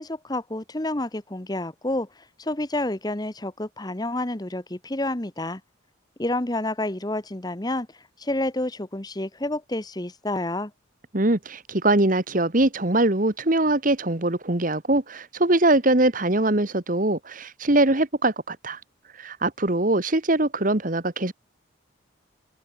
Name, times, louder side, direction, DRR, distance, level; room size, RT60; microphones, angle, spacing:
voice 1, 0.0-2.1 2.4-5.6 6.2-7.9 8.2-10.7, left 1 dB, 20° left, 1.1 m, -29 dB
voice 2, 11.1-18.8 19.2-21.3, right 2 dB, 40° right, 1.5 m, -22 dB
head